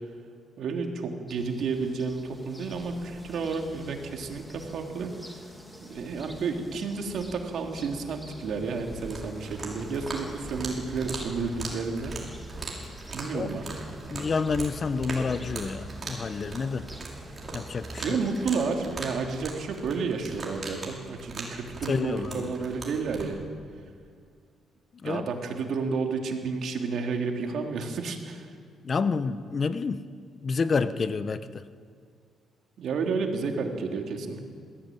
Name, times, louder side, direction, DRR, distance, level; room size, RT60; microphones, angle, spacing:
voice 1, 0.6-5.1 5.8-12.1 13.1-13.7 17.9-23.4 25.0-28.5 32.8-34.5, right 4 dB, 65° right, 3 dB, 3.1 m, -31 dB
sound 1, 1.3-18.4, equal, 5° left, 2.8 m, -46 dB
sound 2, 9.0-23.3, right 3 dB, 40° right, 5.8 m, -40 dB
voice 2, 14.1-16.9 17.5-18.2 21.9-22.5 25.0-25.2 28.8-30.0 30.4-31.6, left 5 dB, 40° left, 13 dB, 1.0 m, -29 dB
21.0 x 16.0 x 9.3 m, 2.1 s
cardioid pair, 90°, 0 cm